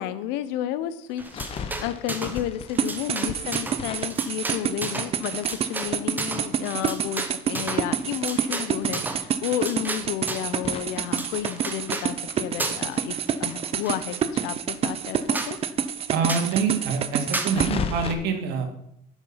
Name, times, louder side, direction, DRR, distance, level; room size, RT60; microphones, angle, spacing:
voice 1, 0.0-15.6, left 12 dB, 90° left, 13 dB, 0.8 m, -32 dB
sound 1, 1.2-5.1 5.4-8.4 8.7-8.8 9.1-9.2 9.6-11.9 12.2-15.3 15.6-15.7 15.9-16.0 16.4-18.1, left 6 dB, 35° left, 1.1 m, -37 dB
sound 2, 1.2-2.4 2.7-10.5 11.0-12.1 12.6-13.0 13.3-14.2 14.7-14.8 15.0-15.1 15.3-15.5 16.3-16.5 17.3-17.5, right 2 dB, 10° right, 1.1 m, -33 dB
sound 3, 2.8-17.7, right 8 dB, 35° right, 0.7 m, -28 dB
voice 2, 16.1-18.6, right 5 dB, 75° right, 5 dB, 2.4 m, -26 dB
10.5 x 7.3 x 5.6 m, 0.75 s
cardioid pair, 140°, 17 cm